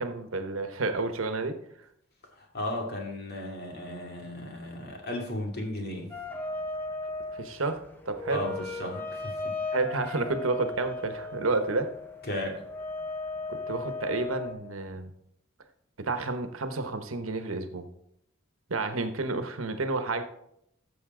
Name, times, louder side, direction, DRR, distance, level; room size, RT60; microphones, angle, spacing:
voice 1, 0.0-1.6 7.3-8.4 9.7-11.9 13.5-15.1 16.0-17.9 18.7-20.2, right 3 dB, 85° right, 8 dB, 1.1 m, -30 dB
voice 2, 2.4-6.1 8.3-9.6 12.3-12.6, left 1 dB, 50° left, 1 dB, 2.4 m, -35 dB
sound 1, 6.1-14.5, left 3 dB, 10° left, 1.2 m, -36 dB
13.5 x 6.9 x 3.8 m, 0.75 s
head